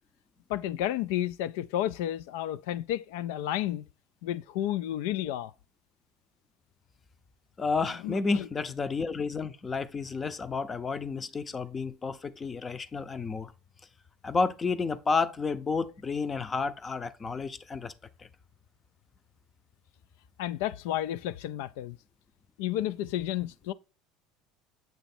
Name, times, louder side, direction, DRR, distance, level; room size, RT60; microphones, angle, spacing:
voice 1, 0.5-3.9 4.2-5.5 8.0-8.5 20.4-22.0 22.6-23.7, left 12 dB, 85° left, 0.3 m, -31 dB
voice 2, 7.6-13.5 14.2-17.9 18.2-18.3, left 4 dB, 25° left, 0.6 m, -31 dB
7.9 x 3.1 x 4.2 m
supercardioid pair, 125°, 0 cm